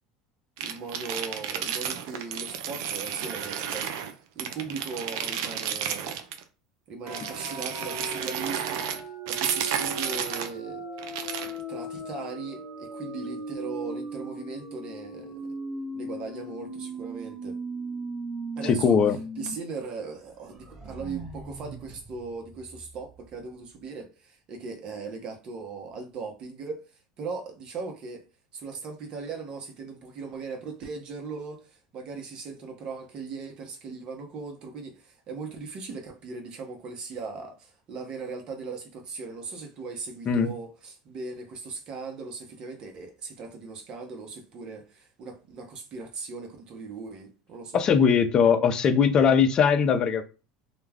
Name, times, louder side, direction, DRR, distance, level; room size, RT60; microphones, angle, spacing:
voice 1, 0.6-3.9 4.3-6.2 6.9-8.9 9.3-10.9 11.7-15.5 15.9-17.6 18.6-19.0 19.4-26.8 27.2-28.2 28.5-47.9, right 4 dB, 45° right, 0.8 m, -38 dB
sound 1, 0.6-4.1 4.4-6.4 7.1-10.5 11.0-11.6, right 8 dB, 75° right, 0.5 m, -32 dB
sound 2, 7.0-19.5 19.9-20.0 20.3-23.0, right 1 dB, 20° right, 1.3 m, -38 dB
voice 2, 18.6-19.2 40.3-40.5 47.7-50.3, left 6 dB, 40° left, 0.5 m, -20 dB
2.3 x 2.3 x 3.4 m
supercardioid pair, 100°, 2 cm